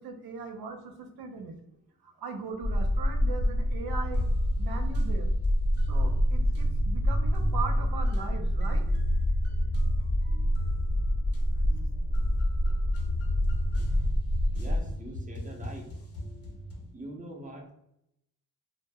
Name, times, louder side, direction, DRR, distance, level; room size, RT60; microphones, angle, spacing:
voice 1, 0.0-1.6 2.0-4.3 4.6-5.3 5.8-8.8, right 4 dB, 85° right, 4 dB, 0.5 m, -39 dB
sound 1, 2.6-14.8, equal, 25° left, 0.3 m, -27 dB
sound 2, 4.1-16.9, left 1 dB, 40° left, 0.8 m, -38 dB
voice 2, 14.5-16.3 16.7-17.7, right 1 dB, 20° right, -1 dB, 0.7 m, -44 dB
2.0 x 2.0 x 3.3 m, 0.80 s
cardioid pair, 60°, 36 cm